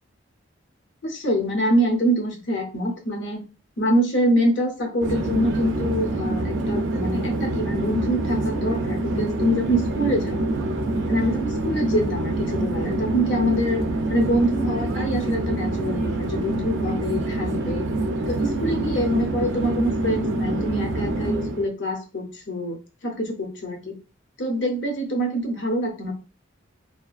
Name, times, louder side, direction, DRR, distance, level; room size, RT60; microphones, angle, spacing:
voice 1, 1.0-3.4 3.8-10.5 11.1-13.8 14.1-17.9 18.3-24.0 24.4-26.1, equal, 60° left, 3 dB, 0.7 m, -25 dB
Conversation / Chatter / Fixed-wing aircraft airplane, 5.0-21.7, right 2 dB, 60° right, 0.4 m, -26 dB
2.6 x 2.4 x 2.3 m, 0.33 s
head